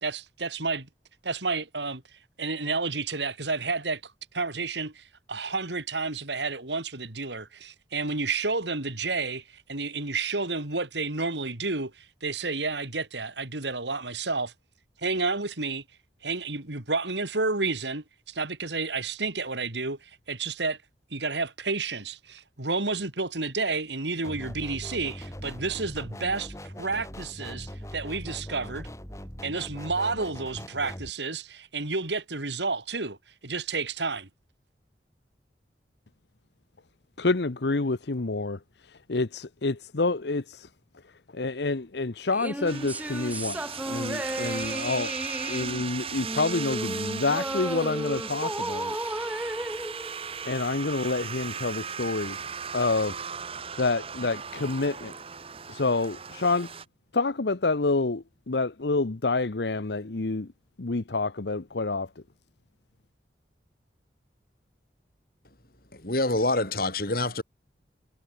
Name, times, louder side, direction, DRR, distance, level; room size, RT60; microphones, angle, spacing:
voice 1, 0.0-0.9 1.2-2.0 2.4-14.5 15.0-15.8 16.2-20.8 21.1-28.9 29.4-33.2 33.4-34.3, right 3 dB, 80° right, 3.3 m, -30 dB
sound 1, 24.2-31.1, equal, 15° left, 5.8 m, -41 dB
voice 2, 37.2-38.6 38.9-40.7 41.3-45.1 45.5-48.9 50.5-52.4 52.7-53.2 53.8-55.1 55.7-56.7 57.1-60.5 60.8-62.1, left 3 dB, 70° left, 0.9 m, -28 dB
sound 2, 42.3-50.9, right 1 dB, 10° right, 1.6 m, -34 dB
sound 3, 42.7-56.8, right 6 dB, 30° right, 1.1 m, -37 dB
voice 3, 65.9-67.4, left 2 dB, 55° left, 3.9 m, -26 dB
head